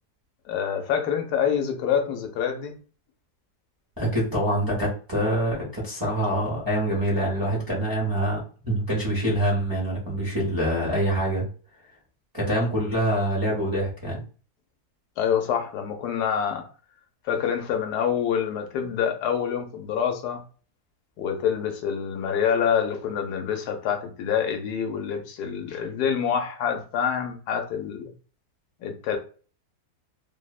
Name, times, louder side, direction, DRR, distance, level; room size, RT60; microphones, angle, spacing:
voice 1, 0.5-2.8 15.2-16.7 17.2-20.4 21.2-28.1 28.8-29.2, left 8 dB, 85° left, 1.1 m, -26 dB
voice 2, 4.0-11.5 12.3-14.2, right 1 dB, 20° right, 0.6 m, -25 dB
3.1 x 2.0 x 2.3 m
omnidirectional pair, 1.7 m